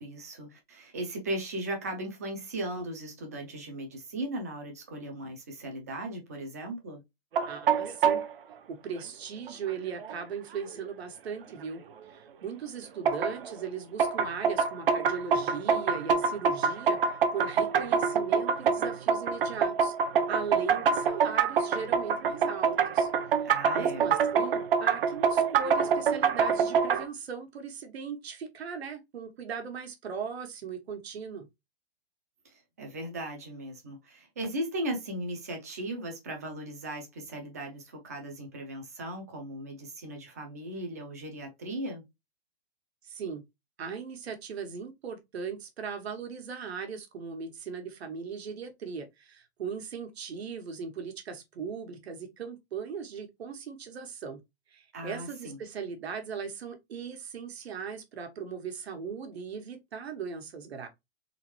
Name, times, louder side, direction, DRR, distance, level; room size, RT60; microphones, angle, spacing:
voice 1, 0.0-7.0 23.4-24.1 32.5-42.0 54.9-55.6, right 1 dB, 15° right, 0.4 m, -37 dB
sound 1, 7.3-8.3 9.5-9.6 10.0-10.1 10.7-10.8 13.0-13.5 14.0-27.0, right 6 dB, 60° right, 0.7 m, -26 dB
voice 2, 7.5-8.2 8.7-11.8 12.1-19.9 20.3-23.1 23.7-31.5 43.0-43.4 43.8-54.4 54.7-60.9, right 6 dB, 75° right, 1.2 m, -38 dB
3.6 x 3.0 x 3.1 m
hypercardioid pair, 175°, 32 cm